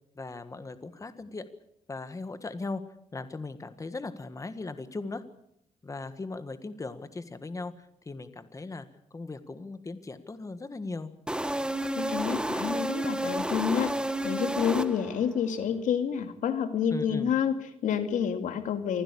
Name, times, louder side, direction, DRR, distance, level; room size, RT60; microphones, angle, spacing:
voice 1, 0.2-1.5 1.9-2.8 3.1-5.2 5.8-11.1 16.9-17.3, left 3 dB, 25° left, 11 dB, 1.6 m, -38 dB
sound 1, 11.3-15.3, right 1 dB, 5° right, 1.4 m, -31 dB
voice 2, 12.0-13.9 14.2-19.0, left 8 dB, 90° left, 8 dB, 2.4 m, -29 dB
25.0 x 15.5 x 8.6 m, 0.78 s
cardioid pair, 100°, 13 cm